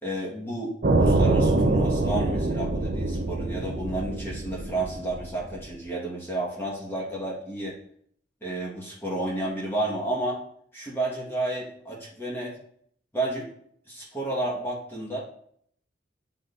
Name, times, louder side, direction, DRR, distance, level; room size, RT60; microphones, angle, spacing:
voice 1, 0.0-7.8 8.4-10.4 10.7-12.5 13.1-13.5 13.9-15.2, right 2 dB, 15° left, -4 dB, 1.4 m, -31 dB
sound 1, 0.8-5.6, right 2 dB, 50° right, 0.7 m, -24 dB
10.5 x 3.7 x 2.6 m, 0.65 s
head